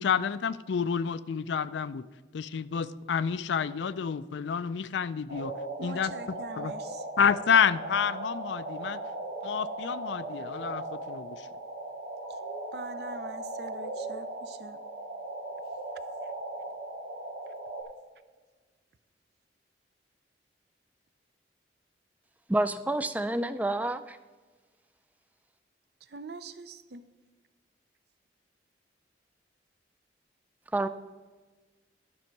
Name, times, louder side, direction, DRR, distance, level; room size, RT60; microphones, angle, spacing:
voice 1, 0.0-2.0 2.3-5.5 5.8-6.7 7.2-9.0 9.4-11.5, left 7 dB, 75° left, 0.4 m, -29 dB
sound 1, 5.3-17.8, right 2 dB, 85° right, 2.0 m, -38 dB
voice 2, 5.8-7.1 12.3-12.4 12.7-14.8 16.2-16.3 26.0-27.1, right 4 dB, 60° right, 0.5 m, -44 dB
voice 3, 22.5-24.2 30.7-30.9, right 1 dB, 10° right, 0.3 m, -28 dB
12.0 x 6.2 x 4.6 m
head